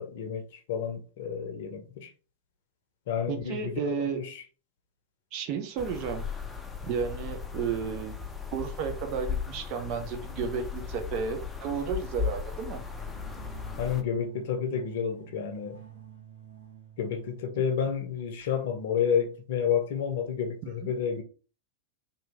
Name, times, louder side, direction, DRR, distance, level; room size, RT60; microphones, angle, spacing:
voice 1, 0.0-2.1 3.1-4.4 13.8-15.8 17.0-21.2, left 7 dB, 55° left, 0.7 m, -30 dB
voice 2, 3.3-4.2 5.3-6.3 6.8-8.1 8.5-12.8 20.6-20.9, right 6 dB, 40° right, 0.6 m, -33 dB
sound 1, 5.8-14.0, left 6 dB, 10° left, 0.5 m, -36 dB
sound 2, 12.9-17.6, right 9 dB, 85° right, 1.5 m, -49 dB
2.9 x 2.7 x 3.3 m
figure-of-eight pair, 90°, 0 cm